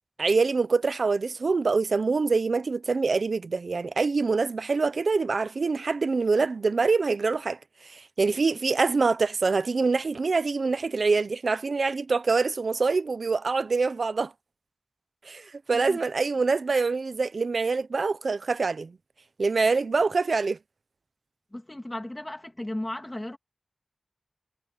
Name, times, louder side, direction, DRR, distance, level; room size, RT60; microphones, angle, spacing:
voice 1, 0.2-14.3 15.3-19.0 19.4-20.6, right 4 dB, 90° right, 0.7 m, -25 dB
voice 2, 21.5-23.4, left 1 dB, 20° left, 2.4 m, -35 dB
wide cardioid pair, 65°, 0 cm